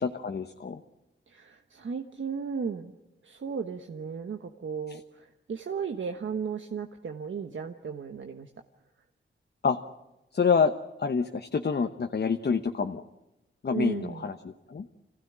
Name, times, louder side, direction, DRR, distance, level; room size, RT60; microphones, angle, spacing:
voice 1, 0.0-0.8 9.6-9.8 10.3-10.7 11.0-13.0 13.6-14.3 14.7-14.8, left 5 dB, 55° left, 6 dB, 1.0 m, -27 dB
voice 2, 1.3-2.9 3.2-8.5 13.7-14.3, right 6 dB, 70° right, 6 dB, 1.2 m, -35 dB
26.5 x 16.5 x 10.0 m, 0.98 s
wide cardioid pair, 120°, 20 cm